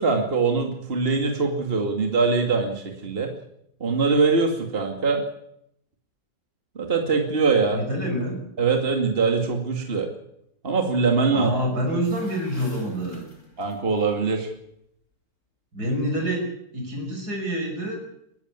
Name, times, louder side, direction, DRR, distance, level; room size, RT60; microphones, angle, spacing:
voice 1, 0.0-3.3 3.8-5.2 6.8-7.8 8.6-10.1 10.6-11.5 13.6-14.5, right 4 dB, 30° right, 3 dB, 2.6 m, -22 dB
voice 2, 7.7-8.4 11.3-13.3 15.7-16.5 16.7-18.0, equal, 60° right, 1 dB, 6.5 m, -27 dB
sound 1, 11.9-14.0, left 1 dB, 55° left, 4.6 m, -45 dB
22.5 x 14.0 x 9.6 m, 0.75 s
omnidirectional pair, 1.9 m